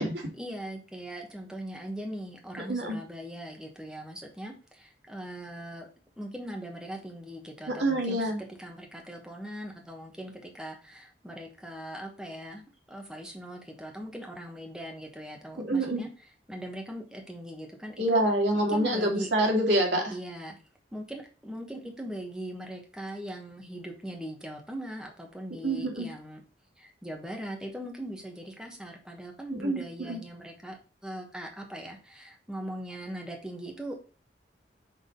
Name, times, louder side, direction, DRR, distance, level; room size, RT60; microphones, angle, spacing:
voice 1, 0.4-5.9 6.2-8.3 8.6-12.6 12.9-16.1 16.5-18.2 18.5-19.3 20.1-20.6 20.9-26.4 26.8-34.0, equal, 5° right, 1 dB, 1.3 m, -40 dB
voice 2, 7.7-8.4 15.6-16.0 18.0-20.1 25.6-26.1 29.6-30.2, right 1 dB, 90° right, 1 dB, 2.2 m, -26 dB
6.3 x 3.8 x 5.3 m, 0.36 s
head